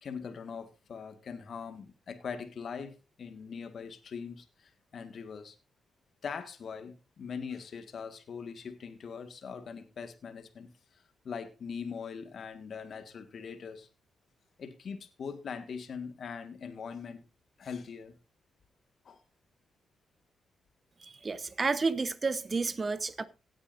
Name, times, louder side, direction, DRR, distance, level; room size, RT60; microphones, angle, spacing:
voice 1, 0.0-5.6 6.2-13.9 14.6-17.2 17.6-18.1 19.1-19.2, left 6 dB, 60° left, 1.7 m, -42 dB
voice 2, 21.0-23.2, right 4 dB, 40° right, 1.0 m, -31 dB
17.5 x 8.7 x 2.6 m
hypercardioid pair, 40°, 0 cm